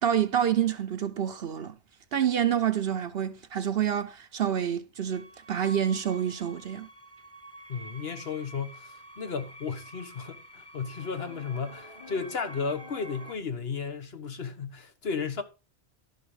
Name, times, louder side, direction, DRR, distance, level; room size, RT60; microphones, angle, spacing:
voice 1, 0.0-1.8 2.1-6.9, right 9 dB, 65° right, 1.0 m, -27 dB
sound 1, 5.1-13.4, equal, 20° left, 1.5 m, -47 dB
voice 2, 7.7-15.4, left 5 dB, 60° left, 1.6 m, -34 dB
12.0 x 5.8 x 4.9 m
omnidirectional pair, 1.1 m